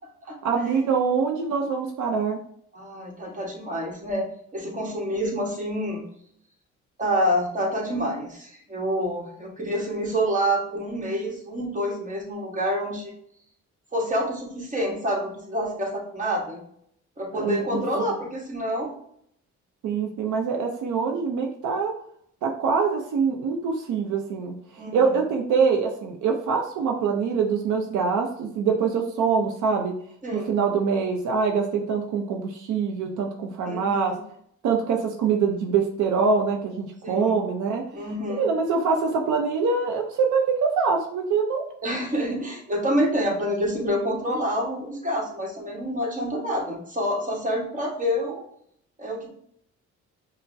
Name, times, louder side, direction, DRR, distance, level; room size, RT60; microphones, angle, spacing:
voice 1, 0.4-2.4 17.3-17.8 19.8-21.9 22.4-24.5 24.9-30.0 30.3-34.2 34.6-37.8 38.4-41.6, right 5 dB, 75° right, 2 dB, 0.6 m, -24 dB
voice 2, 2.7-4.3 4.5-6.1 7.0-13.1 13.9-16.6 17.2-18.9 24.8-25.2 30.2-30.5 33.6-34.2 37.0-37.4 37.9-38.5 41.8-48.4 49.0-49.3, equal, 25° right, -1 dB, 1.2 m, -27 dB
5.3 x 2.1 x 2.6 m, 0.67 s
cardioid pair, 90°, 30 cm